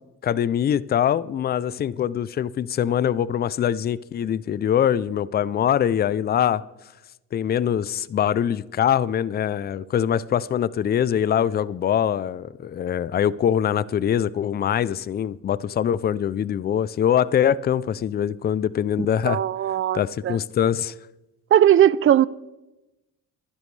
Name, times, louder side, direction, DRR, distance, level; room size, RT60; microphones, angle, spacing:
voice 1, 0.0-6.6 7.3-19.4 19.9-20.9, left 9 dB, 30° left, 0.4 m, -23 dB
voice 2, 19.2-20.4 21.5-22.3, right 11 dB, 40° right, 0.4 m, -18 dB
23.0 x 10.5 x 3.3 m
cardioid pair, 105°, 31 cm